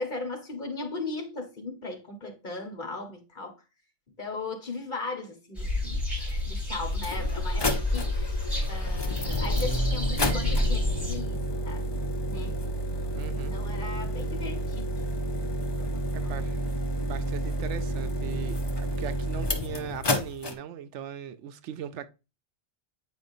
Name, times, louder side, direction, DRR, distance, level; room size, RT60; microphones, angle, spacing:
voice 1, 0.0-3.5 4.2-8.3 8.7-11.9 12.2-12.5 13.5-14.9 15.8-16.3, left 3 dB, 45° left, 1.4 m, -37 dB
sound 1, 5.5-11.1, left 1 dB, ahead, 4.0 m, -29 dB
sound 2, 6.3-6.4 6.9-20.5, equal, 25° left, 0.6 m, -30 dB
voice 2, 13.1-13.6 16.1-16.7 17.0-22.1, right 9 dB, 85° right, 0.9 m, -39 dB
8.2 x 5.1 x 2.6 m
omnidirectional pair, 1.2 m